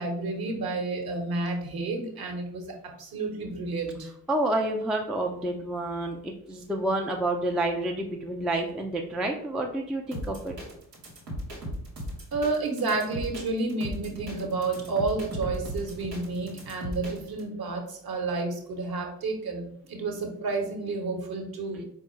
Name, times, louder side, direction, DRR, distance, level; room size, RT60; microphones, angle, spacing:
voice 1, 0.0-4.1 12.3-21.8, right 3 dB, 50° right, 3 dB, 1.0 m, -30 dB
voice 2, 4.3-10.5, right 1 dB, ahead, 2 dB, 0.3 m, -29 dB
sound 1, 10.1-17.4, equal, 90° right, 0.9 m, -37 dB
4.4 x 2.2 x 3.1 m, 0.68 s
figure-of-eight pair, 40°, 48 cm